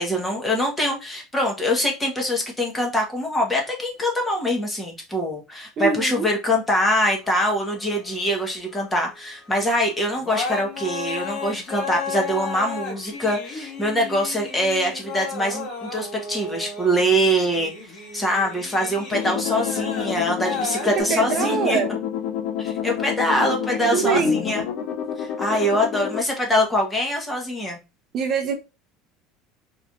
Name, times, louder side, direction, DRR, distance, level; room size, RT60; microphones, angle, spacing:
voice 1, 0.0-21.8 22.6-24.6 25.2-27.8, equal, 10° left, 1.3 m, -24 dB
voice 2, 5.8-6.2 20.8-22.0 23.9-24.4 28.1-28.5, right 5 dB, 40° right, 0.6 m, -23 dB
sound 1, 7.2-8.8 9.7-9.8 10.2-21.0, left 4 dB, 45° left, 1.7 m, -34 dB
sound 2, 19.1-26.2, left 9 dB, 65° left, 0.8 m, -29 dB
3.9 x 3.1 x 2.5 m
cardioid pair, 155°, 0 cm